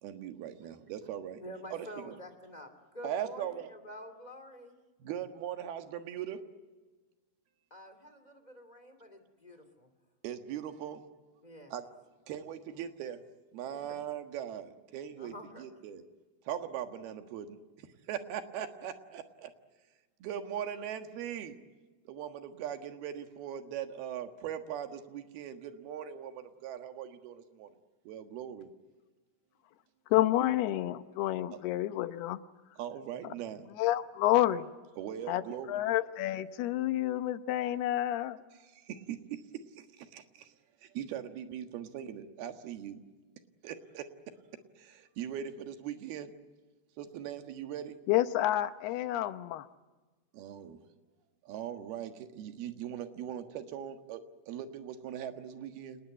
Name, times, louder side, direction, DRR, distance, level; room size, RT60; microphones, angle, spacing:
voice 1, 0.0-1.4 1.7-2.2 3.0-3.7 5.0-6.4 10.2-11.0 11.7-11.8 12.3-13.2 13.5-16.0 16.5-17.6 18.1-19.5 20.2-21.6 22.1-27.7 28.1-28.7 31.5-31.6 32.8-33.7 35.0-35.8 38.9-39.4 40.0-40.5 40.8-43.0 43.6-44.0 44.8-46.3 47.0-48.0 50.3-50.8 51.5-56.0, right 9 dB, 80° right, 7 dB, 3.5 m, -40 dB
voice 2, 1.4-4.8 7.7-9.9 11.4-11.7 13.7-14.0 15.2-15.7, equal, 15° left, 7 dB, 2.2 m, -48 dB
voice 3, 30.1-32.4 33.8-34.7 35.3-38.4 48.1-49.7, left 14 dB, 85° left, 12 dB, 3.0 m, -29 dB
28.0 x 20.0 x 9.2 m, 1.3 s
omnidirectional pair, 4.5 m